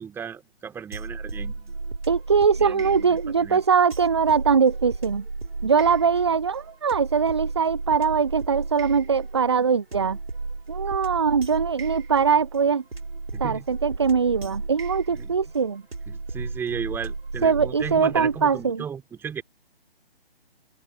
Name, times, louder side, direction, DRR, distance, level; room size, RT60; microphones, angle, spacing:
voice 1, 0.0-1.7 2.6-3.6 13.3-13.6 15.1-15.3 16.1-19.4, right 7 dB, 5° right, 3.3 m, -35 dB
sound 1, 0.9-18.7, right 3 dB, 75° right, 4.7 m, -34 dB
voice 2, 2.1-5.2 5.6-10.2 10.7-12.8 13.4-15.8 17.4-18.8, right 6 dB, 30° right, 0.4 m, -22 dB
open air
figure-of-eight pair, 145°, 30 cm